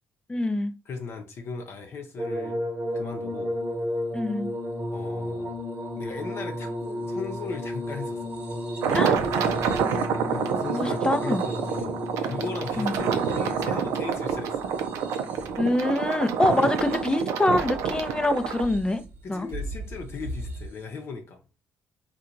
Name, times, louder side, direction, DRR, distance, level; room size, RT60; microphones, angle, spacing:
voice 1, 0.3-0.7 4.1-4.5 8.9-9.2 10.7-11.4 12.8-12.9 15.6-19.0 19.3-19.5, left 1 dB, 15° left, 0.5 m, -25 dB
voice 2, 0.9-2.6 2.9-3.5 4.9-5.6 6.0-8.3 8.8-9.1 10.3-14.7 16.5-16.7 19.2-21.4, left 4 dB, 60° left, 0.7 m, -37 dB
sound 1, 2.2-17.4 18.3-19.0 20.4-20.6, left 1 dB, 30° right, 1.1 m, -34 dB
sound 2, 8.8-18.6, right 7 dB, 80° right, 0.4 m, -28 dB
sound 3, 13.1-20.7, right 1 dB, 50° right, 0.7 m, -41 dB
2.8 x 2.3 x 3.6 m
supercardioid pair, 70°, 5 cm